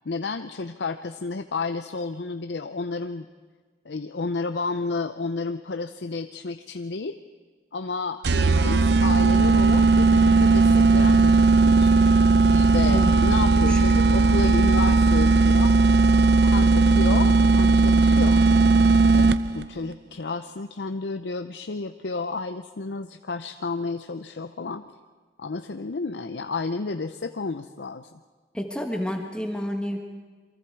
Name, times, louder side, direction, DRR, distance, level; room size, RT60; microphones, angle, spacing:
voice 1, 0.0-3.3 3.8-7.2 7.7-12.0 12.5-15.8 16.4-18.4 19.1-24.9 25.4-28.1, left 3 dB, 85° left, 8 dB, 0.7 m, -31 dB
sound 1, 8.2-19.7, right 3 dB, 75° right, 0.6 m, -17 dB
voice 2, 28.5-30.0, left 1 dB, 5° left, 3 dB, 1.4 m, -29 dB
28.0 x 24.0 x 4.6 m, 1.4 s
head